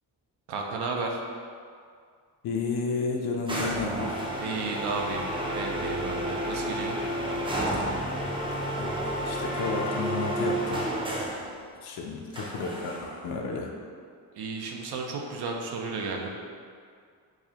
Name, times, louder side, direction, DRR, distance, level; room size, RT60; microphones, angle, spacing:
voice 1, 0.5-1.2 4.3-7.0 14.3-16.4, right 3 dB, 70° right, 1 dB, 0.6 m, -33 dB
voice 2, 2.4-4.3 8.8-10.8 11.8-13.7, left 4 dB, 65° left, 0 dB, 0.5 m, -32 dB
sound 1, 3.5-11.5 12.3-13.3, right 1 dB, 15° right, 0.4 m, -31 dB
4.7 x 2.1 x 2.8 m, 2.1 s
cardioid pair, 120°, 40 cm